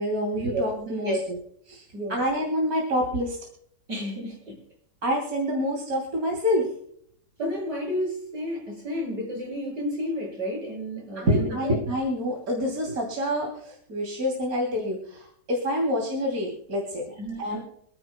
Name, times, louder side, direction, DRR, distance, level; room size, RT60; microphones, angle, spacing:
voice 1, 0.0-1.4 1.7-3.4 5.0-6.7 11.1-17.0 17.4-17.6, equal, 50° right, -1 dB, 3.4 m, -27 dB
voice 2, 3.9-4.6 7.4-11.8 17.2-17.6, equal, 65° right, -2 dB, 6.9 m, -31 dB
28.0 x 9.9 x 2.2 m, 0.66 s
omnidirectional pair, 2.0 m